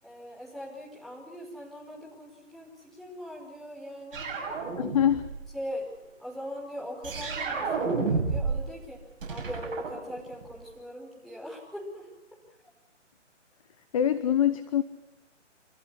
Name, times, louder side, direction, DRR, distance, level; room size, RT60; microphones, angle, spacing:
voice 1, 0.0-4.3 5.5-9.0 9.3-12.1, equal, ahead, -6 dB, 5.4 m, -40 dB
sound 1, 4.1-5.4 7.0-8.7 9.0-10.6, right 4 dB, 45° right, 6.6 m, -31 dB
voice 2, 4.8-5.3 13.9-14.8, left 10 dB, 25° left, 13 dB, 0.9 m, -24 dB
27.0 x 14.5 x 10.0 m, 0.93 s
figure-of-eight pair, 150°, 38 cm